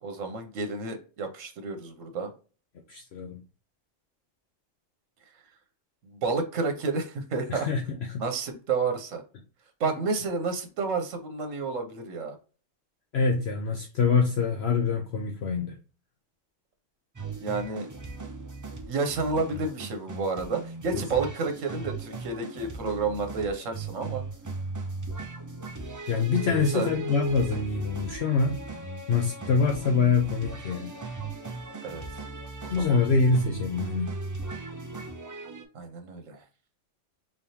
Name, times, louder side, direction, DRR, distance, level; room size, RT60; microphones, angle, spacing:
voice 1, 0.0-2.3 6.0-7.7 8.2-9.2 9.8-12.4 17.4-17.9 18.9-24.2 26.7-26.9 31.8-32.0 32.6-33.0 35.7-36.4, right 4 dB, 85° right, 1.3 m, -30 dB
voice 2, 2.9-3.4 7.5-8.2 13.1-15.8 20.9-21.0 26.1-28.6 29.1-30.9 32.7-34.1, left 5 dB, 60° left, 0.9 m, -25 dB
sound 1, 17.2-35.6, right 3 dB, 30° right, 0.3 m, -37 dB
3.8 x 3.4 x 2.8 m
omnidirectional pair, 1.3 m